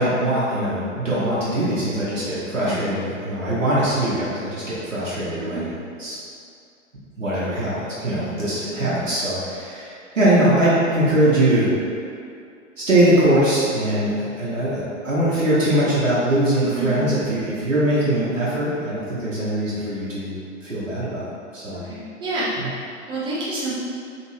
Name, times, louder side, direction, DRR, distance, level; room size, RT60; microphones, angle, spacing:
voice 1, 0.0-6.2 7.2-7.7 8.0-11.7 12.9-21.2 21.5-21.8 22.6-22.7, right 1 dB, 85° right, -9 dB, 0.8 m, -21 dB
voice 2, 2.6-2.9 5.4-5.7 8.7-9.1 16.8-17.2 21.8-22.5 23.1-23.7, right 2 dB, 15° right, -8 dB, 0.6 m, -28 dB
2.9 x 2.6 x 3.0 m, 2.4 s
figure-of-eight pair, 100°, 38 cm